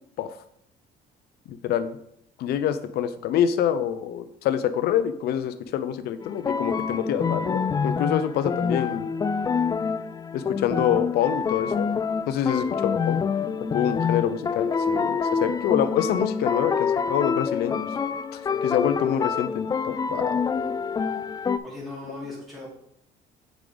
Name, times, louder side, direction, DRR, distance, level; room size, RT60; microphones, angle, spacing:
voice 1, 1.5-2.0 2.4-9.1 10.3-11.9 12.3-13.2 13.6-17.9 18.3-20.4, left 9 dB, 70° left, 10 dB, 0.6 m, -26 dB
sound 1, 6.2-21.6, left 5 dB, 20° left, 0.3 m, -27 dB
voice 2, 21.6-22.7, left 2 dB, ahead, -7 dB, 3.0 m, -37 dB
8.1 x 5.0 x 3.9 m, 0.72 s
cardioid pair, 110°, 17 cm